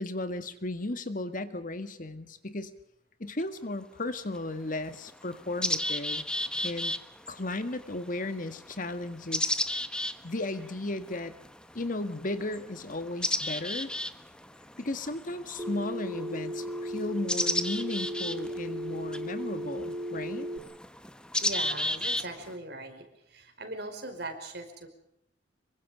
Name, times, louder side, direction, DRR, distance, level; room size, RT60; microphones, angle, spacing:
voice 1, 0.0-2.7 3.2-6.2 6.6-6.9 7.3-9.6 10.2-11.3 11.7-13.9 14.8-20.5, left 2 dB, 45° left, 10 dB, 1.7 m, -35 dB
sound 1, 3.4-3.5 4.3-4.4 4.8-22.5, left 1 dB, 5° left, 1.1 m, -34 dB
Telephone, 15.6-20.6, equal, 20° right, 1.5 m, -36 dB
voice 2, 21.4-24.9, right 2 dB, 60° right, 6 dB, 5.1 m, -40 dB
26.5 x 23.5 x 5.1 m, 0.79 s
head